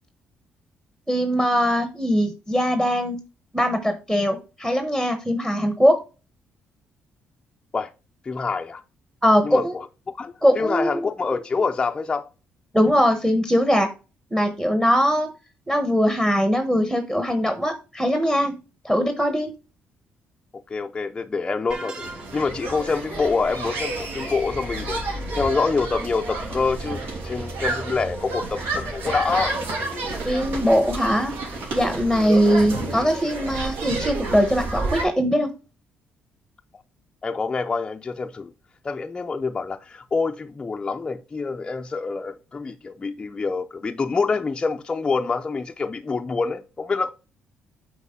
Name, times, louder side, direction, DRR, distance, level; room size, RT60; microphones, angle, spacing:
voice 1, 1.1-3.2 3.5-6.0 9.2-9.8 10.4-11.1 12.7-13.9 14.3-15.3 15.7-18.5 18.8-19.5 30.2-31.3 31.7-35.5, equal, 5° right, 1.0 m, -21 dB
voice 2, 8.2-8.8 9.4-9.9 10.2-12.3 20.7-25.0 25.3-29.5 37.2-38.5 38.8-47.1, left 4 dB, 20° left, 0.5 m, -26 dB
sound 1, 21.7-22.7, right 3 dB, 30° right, 3.5 m, -38 dB
sound 2, 22.0-35.0, right 2 dB, 80° right, 3.1 m, -30 dB
8.2 x 4.7 x 3.6 m
cardioid pair, 125°, 4 cm